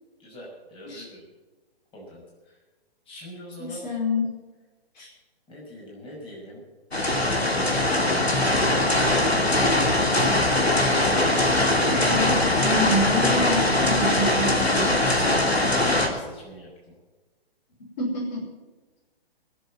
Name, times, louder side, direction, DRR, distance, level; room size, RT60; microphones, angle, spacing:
voice 1, 0.2-1.2 1.9-2.2 3.1-3.8 5.5-6.6 7.3-8.4 9.4-10.5 15.8-16.7, equal, 15° left, -3 dB, 6.0 m, -42 dB
voice 2, 3.6-4.4 4.9-5.1 11.9-15.3 18.0-18.5, left 1 dB, 45° left, -2 dB, 5.0 m, -28 dB
sound 1, 6.9-16.1, left 1 dB, 90° left, 2.8 m, -21 dB
22.0 x 7.8 x 7.4 m, 1.2 s
figure-of-eight pair, 125°, 30 cm